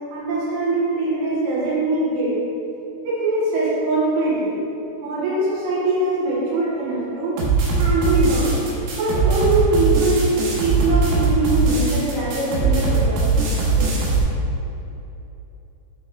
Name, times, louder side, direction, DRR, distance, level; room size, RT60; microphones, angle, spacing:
voice 1, 0.1-2.4 3.0-4.5 5.0-7.4 7.8-8.5 8.9-10.3 10.6-13.2 13.5-14.1, right 2 dB, 65° right, -8 dB, 3.2 m, -22 dB
sound 1, 7.4-14.2, right 4 dB, 90° right, 3.6 m, -20 dB
9.2 x 3.3 x 3.5 m, 2.9 s
omnidirectional pair, 5.3 m